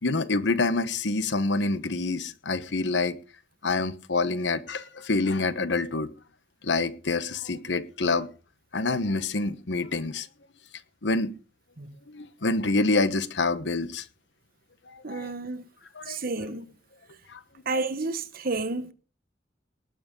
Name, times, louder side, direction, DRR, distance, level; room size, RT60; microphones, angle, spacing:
voice 1, 0.0-3.2 3.6-6.1 6.6-8.3 8.7-10.3 11.0-11.3 12.1-14.1 14.9-15.3 15.9-16.2 17.3-17.4, left 3 dB, 70° left, 1.1 m, -27 dB
voice 2, 15.0-15.6 16.1-16.7 17.6-18.9, right 3 dB, 55° right, 1.2 m, -31 dB
19.0 x 7.9 x 5.3 m
head